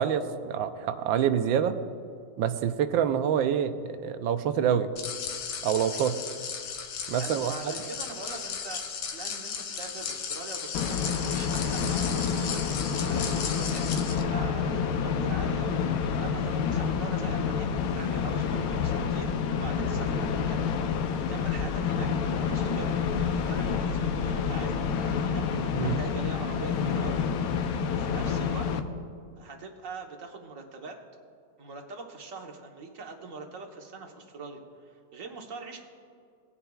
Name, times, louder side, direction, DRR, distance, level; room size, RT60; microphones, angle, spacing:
voice 1, 0.0-1.8 2.4-4.9 5.6-6.2 7.1-7.8 25.8-26.0, right 8 dB, 85° right, 10 dB, 1.4 m, -26 dB
sound 1, 5.0-14.2, left 6 dB, 85° left, 1.7 m, -36 dB
voice 2, 7.2-8.8 9.1-17.7 18.0-20.6 21.3-22.1 22.4-27.5 27.9-28.7 29.4-31.0 31.6-35.8, right 3 dB, 50° right, 2 dB, 1.3 m, -42 dB
sound 2, 10.7-28.8, left 6 dB, 70° left, 0.9 m, -28 dB
19.0 x 9.8 x 2.3 m, 2.3 s
omnidirectional pair, 2.1 m